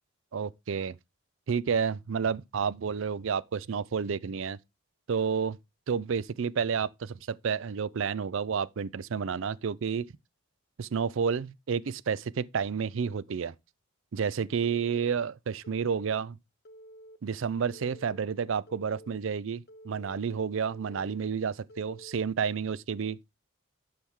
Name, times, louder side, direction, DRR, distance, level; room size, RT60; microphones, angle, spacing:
voice 1, 0.3-1.0 1.5-4.6 5.1-5.6 5.9-10.1 10.8-13.5 14.1-16.4 17.2-23.2, right 6 dB, 65° right, 0.4 m, -30 dB
Telephone, 16.6-17.2 17.7-18.2 18.7-19.2 19.7-20.2 20.7-21.2 21.7-22.2, right 1 dB, 50° left, 0.8 m, -51 dB
11.5 x 4.7 x 3.6 m
head